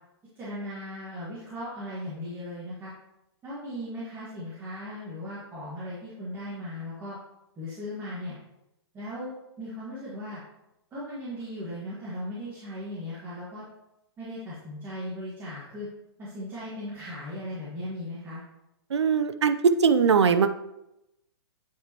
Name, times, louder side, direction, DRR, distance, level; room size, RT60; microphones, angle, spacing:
voice 1, 0.4-2.9 3.4-7.2 7.6-8.4 8.9-10.4 10.9-13.6 14.2-15.9 16.2-18.4, left 1 dB, 15° right, -10 dB, 1.7 m, -37 dB
voice 2, 18.9-20.5, right 6 dB, 90° right, 12 dB, 0.6 m, -21 dB
9.3 x 4.7 x 2.9 m, 0.88 s
hypercardioid pair, 150°, 14 cm